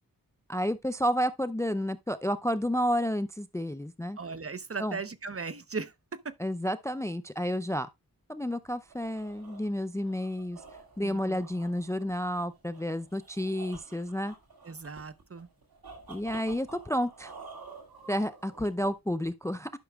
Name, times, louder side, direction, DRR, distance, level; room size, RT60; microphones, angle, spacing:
voice 1, 0.5-4.2 4.8-5.0 6.4-7.9 8.3-10.6 11.0-14.3 16.1-17.3 18.1-19.7, equal, 10° left, 0.4 m, -31 dB
voice 2, 4.2-6.3 11.0-11.4 14.6-15.5, right 4 dB, 40° right, 0.8 m, -38 dB
sound 1, 8.6-19.0, right 4 dB, 80° right, 2.2 m, -50 dB
11.5 x 6.0 x 2.3 m
cardioid pair, 45°, 36 cm